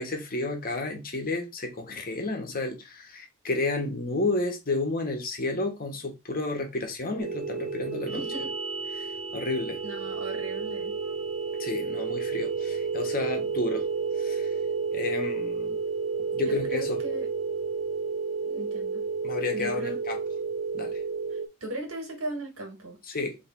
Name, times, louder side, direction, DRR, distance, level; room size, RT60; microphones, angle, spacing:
voice 1, 0.0-8.2 8.9-9.1 9.3-9.8 11.6-13.9 14.2-14.5 14.9-15.8 16.3-17.0 19.2-20.2 20.7-21.0 23.1-23.4, left 2 dB, 45° left, 1.2 m, -31 dB
sound 1, 7.2-21.5, right 5 dB, 30° right, 0.7 m, -31 dB
voice 2, 8.1-8.5 9.0-9.1 9.8-10.9 16.4-17.3 18.4-19.0 19.5-19.9 21.3-23.0, right 1 dB, 70° right, 1.6 m, -38 dB
3.3 x 3.2 x 4.6 m
head